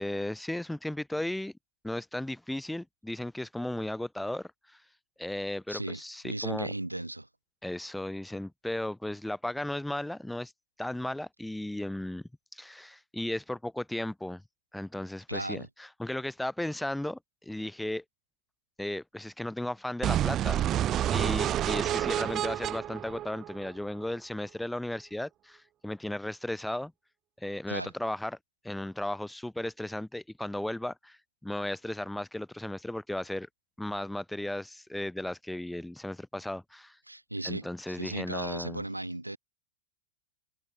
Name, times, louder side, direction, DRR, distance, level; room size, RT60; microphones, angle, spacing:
voice 1, 0.0-1.5 1.8-4.8 5.2-6.7 7.6-10.5 10.8-12.2 12.5-14.4 14.7-18.0 18.8-26.9 27.4-28.4 28.6-33.5 33.8-37.0 37.4-38.8, left 1 dB, 5° left, 4.5 m, -35 dB
voice 2, 5.7-7.3 15.3-15.7 27.7-27.9 37.1-39.4, right 1 dB, 85° right, 7.2 m, -36 dB
sound 1, 20.0-24.0, right 12 dB, 30° right, 3.1 m, -29 dB
figure-of-eight pair, 90°, 0 cm